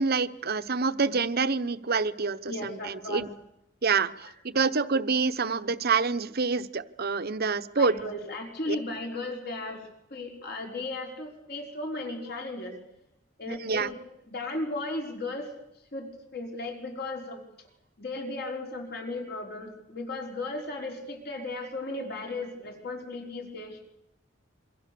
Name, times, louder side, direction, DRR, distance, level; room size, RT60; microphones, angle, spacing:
voice 1, 0.0-3.3 3.8-7.9 8.7-8.8 13.5-13.9, right 4 dB, 50° right, 12 dB, 0.9 m, -27 dB
voice 2, 2.5-3.3 4.2-4.3 7.7-12.7 13.4-13.9 14.3-15.5 15.9-17.4 18.0-23.8, left 2 dB, 55° left, 1 dB, 4.6 m, -36 dB
26.5 x 24.0 x 6.9 m, 0.83 s
head